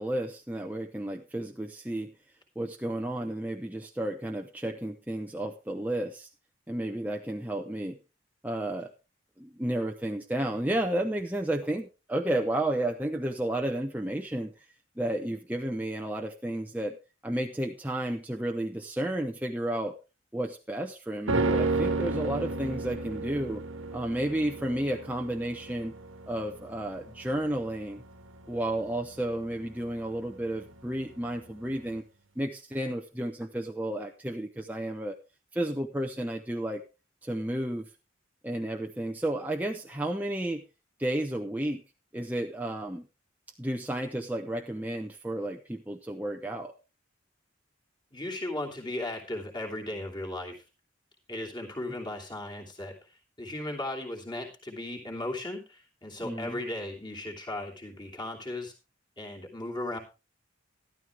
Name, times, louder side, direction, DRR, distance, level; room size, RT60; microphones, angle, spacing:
voice 1, 0.0-2.1 2.6-6.3 6.7-8.0 8.4-8.9 9.4-14.5 15.0-17.0 17.2-20.0 20.3-23.6 23.9-26.0 26.3-28.0 28.5-32.0 32.4-35.2 35.5-36.8 37.2-37.9 38.4-40.6 41.0-41.8 42.1-43.0 43.6-46.7 56.2-56.6, right 1 dB, 10° right, 3 dB, 0.7 m, -32 dB
sound 1, 21.3-30.7 31.0-31.1, right 3 dB, 85° right, 1.7 m, -33 dB
voice 2, 48.1-50.6 51.3-52.9 53.4-58.7 59.2-60.0, left 1 dB, 25° left, -1 dB, 2.9 m, -36 dB
12.5 x 12.5 x 3.4 m, 0.29 s
head